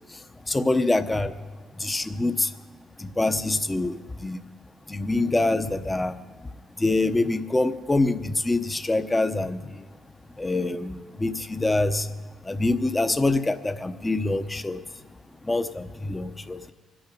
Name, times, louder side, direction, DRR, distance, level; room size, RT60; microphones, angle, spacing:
voice 1, 0.5-1.3 1.8-2.5 3.0-4.4 4.9-6.2 6.8-9.6 10.4-12.1 12.4-14.8 15.4-16.7, left 2 dB, 15° left, 8 dB, 0.9 m, -25 dB
24.5 x 8.7 x 5.3 m, 1.6 s
cardioid pair, 90°, 0 cm